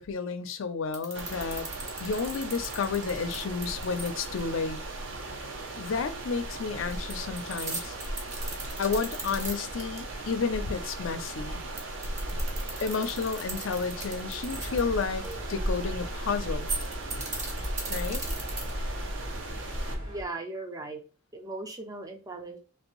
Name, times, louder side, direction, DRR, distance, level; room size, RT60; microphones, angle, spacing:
voice 1, 0.0-1.7 2.0-4.8 5.8-7.9 8.8-11.6 12.8-16.7 17.9-18.2, left 5 dB, 70° left, 0.5 m, -31 dB
sound 1, 0.9-4.4 6.9-10.0 10.3-10.4 11.5-15.3 16.5-18.9, right 3 dB, 35° right, 0.8 m, -38 dB
sound 2, 1.1-20.0, right 1 dB, 65° right, 0.6 m, -36 dB
sound 3, 14.5-20.2, equal, 80° right, 1.5 m, -40 dB
voice 2, 20.1-21.0 21.3-22.6, right 2 dB, 15° right, 0.4 m, -38 dB
3.2 x 2.6 x 3.0 m
head